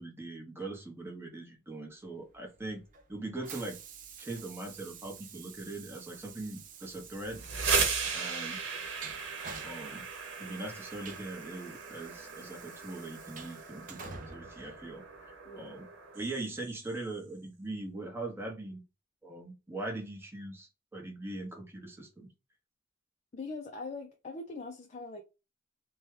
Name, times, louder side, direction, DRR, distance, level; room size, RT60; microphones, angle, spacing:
voice 1, 0.0-2.8 3.1-3.8 4.2-7.4 8.1-8.6 9.6-10.1 10.4-15.9 16.1-18.8 19.2-22.3, right 2 dB, 10° right, 0.8 m, -41 dB
Train, 2.3-15.5, right 6 dB, 45° right, 0.5 m, -49 dB
sound 1, 7.2-17.0, right 5 dB, 75° right, 0.9 m, -37 dB
voice 2, 15.5-15.8 23.3-25.2, left 3 dB, 35° left, 0.4 m, -42 dB
2.7 x 2.2 x 3.1 m
head